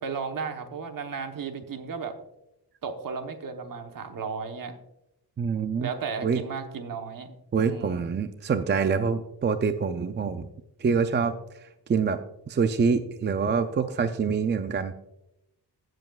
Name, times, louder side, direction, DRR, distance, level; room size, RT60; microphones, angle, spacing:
voice 1, 0.0-2.1 2.8-4.7 5.8-7.3 7.6-8.2, right 5 dB, 50° right, 6 dB, 1.1 m, -34 dB
voice 2, 5.4-5.9 6.2-6.4 7.5-10.5 10.8-11.3 11.9-12.2 12.5-14.9, right 5 dB, 30° right, 10 dB, 0.3 m, -25 dB
17.0 x 7.7 x 2.3 m, 0.88 s
wide cardioid pair, 150°, 41 cm